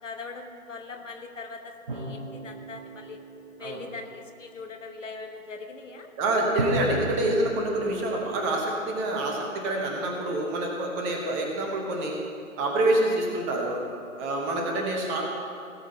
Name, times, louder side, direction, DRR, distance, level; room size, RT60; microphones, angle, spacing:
voice 1, 0.0-3.2 3.6-6.1 8.2-8.3 14.6-14.9, left 4 dB, 65° left, 5 dB, 1.4 m, -41 dB
sound 1, 1.9-4.2 6.6-9.5, right 1 dB, 40° right, 1.3 m, -36 dB
voice 2, 6.2-12.2 12.6-13.8 14.2-15.3, right 1 dB, 10° right, 0 dB, 0.9 m, -27 dB
sound 2, 6.7-10.0, left 2 dB, 85° left, 1.6 m, -42 dB
17.5 x 7.2 x 4.4 m, 2.4 s
figure-of-eight pair, 140°, 41 cm